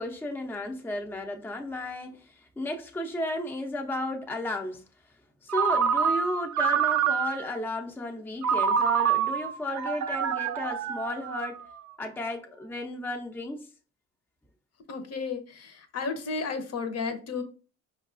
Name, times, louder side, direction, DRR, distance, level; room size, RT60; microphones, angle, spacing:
voice 1, 0.0-4.8 5.4-11.7 12.0-13.7, left 1 dB, 5° left, 0.5 m, -34 dB
Ringtone, 5.5-7.6 8.4-11.8, right 7 dB, 65° right, 0.5 m, -26 dB
voice 2, 14.9-17.4, left 4 dB, 55° left, 0.7 m, -33 dB
4.5 x 2.3 x 2.5 m
cardioid pair, 90°, 30 cm